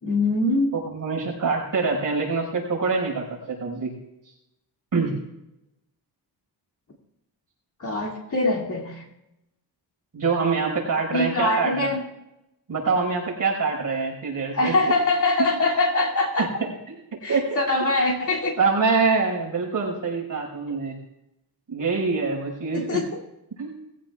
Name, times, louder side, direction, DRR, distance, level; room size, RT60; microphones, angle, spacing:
voice 1, 0.0-0.7 7.8-9.0 11.1-12.0 14.5-16.5 17.2-18.5 22.7-23.0, left 2 dB, 45° left, -3 dB, 2.9 m, -23 dB
voice 2, 0.8-3.9 4.9-5.1 10.1-11.9 12.7-14.7 17.3-17.6 18.6-21.0 21.7-23.0 23.6-23.8, right 4 dB, 45° right, -2 dB, 5.7 m, -25 dB
20.0 x 16.0 x 2.5 m, 0.89 s
wide cardioid pair, 140°, 43 cm